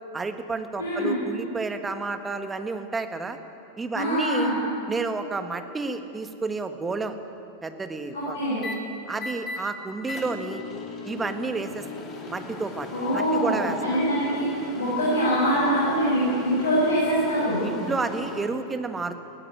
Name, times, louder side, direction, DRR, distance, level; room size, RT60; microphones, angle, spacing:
voice 1, 0.1-3.4 3.8-4.5 4.9-7.1 7.6-8.4 9.1-10.6 11.0-11.9 12.3-12.9 13.1-13.8 17.6-19.1, right 3 dB, 15° right, 8 dB, 1.5 m, -30 dB
voice 2, 0.8-1.1 3.9-4.6 8.1-8.6 12.9-14.5 14.8-17.6, equal, 60° left, -8 dB, 7.5 m, -24 dB
sound 1, 6.9-7.2 8.6-8.7 9.2-9.6 10.1-18.4, left 3 dB, 25° left, 3.4 m, -38 dB
20.0 x 16.0 x 9.8 m, 2.7 s
figure-of-eight pair, 90°, 0 cm